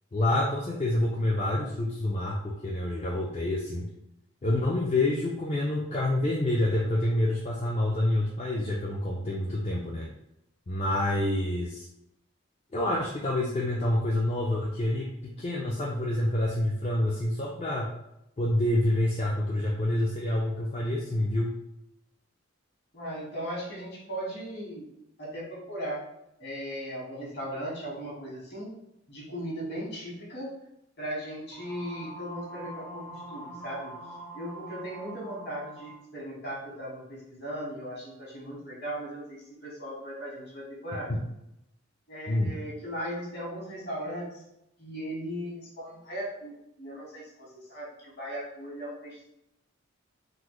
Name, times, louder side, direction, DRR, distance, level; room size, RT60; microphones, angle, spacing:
voice 1, 0.1-3.9 4.4-10.1 10.7-11.9 12.7-17.9 18.4-21.5 41.1-41.2 42.3-42.5, left 1 dB, 30° left, -3 dB, 0.3 m, -27 dB
voice 2, 22.9-24.8 25.2-26.0 26.4-28.7 29.1-30.5 31.0-41.2 42.1-44.4 44.8-49.3, equal, 50° left, -5 dB, 1.2 m, -38 dB
sound 1, 31.5-36.0, right 1 dB, 90° right, 0.7 m, -44 dB
3.7 x 2.0 x 3.0 m, 0.83 s
head